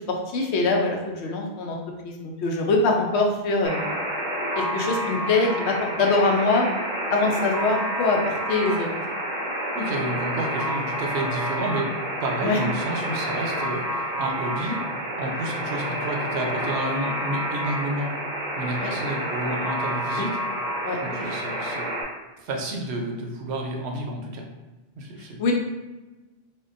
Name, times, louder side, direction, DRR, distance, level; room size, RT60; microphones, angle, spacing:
voice 1, 0.3-1.8 2.0-4.0 4.6-6.6 7.1-8.9 12.4-12.6 18.8-18.9 20.2-20.3 20.8-21.0 25.4-25.5, left 3 dB, 80° left, 1 dB, 0.9 m, -23 dB
Alarm, 3.6-22.0, right 1 dB, 40° right, 0.6 m, -29 dB
voice 2, 9.7-11.9 12.2-18.1 18.6-20.4 21.0-21.9 22.4-24.5 25.0-25.5, right 1 dB, 80° right, 2 dB, 0.9 m, -30 dB
3.5 x 2.2 x 2.5 m, 1.1 s
omnidirectional pair, 1.1 m